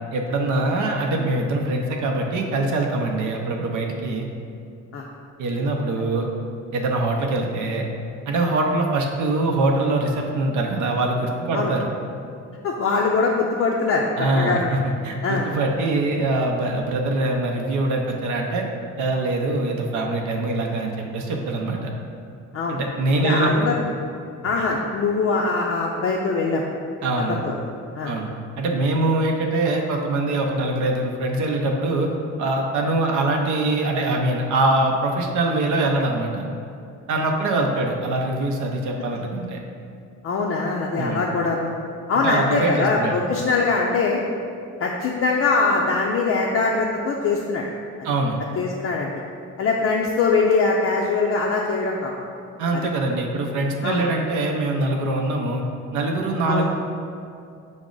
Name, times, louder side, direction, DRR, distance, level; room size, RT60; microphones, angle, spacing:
voice 1, 0.1-4.3 5.4-6.3 6.7-7.8 8.3-11.9 14.2-14.8 15.0-18.6 19.0-21.9 22.7-23.7 27.0-27.4 28.0-28.3 28.6-32.1 32.4-36.5 37.1-39.6 41.0-41.2 42.2-43.2 48.0-48.4 52.6-55.6 55.9-56.7, right 2 dB, 75° right, 1 dB, 0.6 m, -23 dB
voice 2, 12.6-14.1 14.4-14.7 15.2-15.5 22.5-22.8 23.2-23.8 24.4-26.6 27.3-27.5 27.9-28.1 40.2-41.7 42.1-44.2 44.8-47.6 48.6-49.1 49.6-52.1 52.7-52.8 53.8-54.1 56.5-56.7, left 4 dB, 50° left, -2 dB, 0.4 m, -22 dB
5.9 x 2.0 x 3.7 m, 2.5 s
cardioid pair, 90°, 30 cm